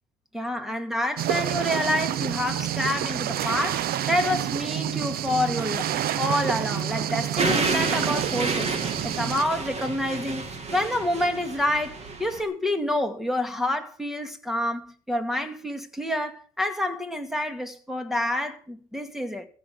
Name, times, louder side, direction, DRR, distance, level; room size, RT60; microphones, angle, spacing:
voice 1, 0.3-5.9 6.2-8.8 9.0-19.5, left 1 dB, ahead, 2.3 m, -28 dB
sound 1, 1.2-9.4, right 11 dB, 65° right, 0.8 m, -28 dB
sound 2, 7.4-12.4, right 3 dB, 40° right, 2.9 m, -30 dB
15.0 x 6.5 x 8.2 m
cardioid pair, 110°, 17 cm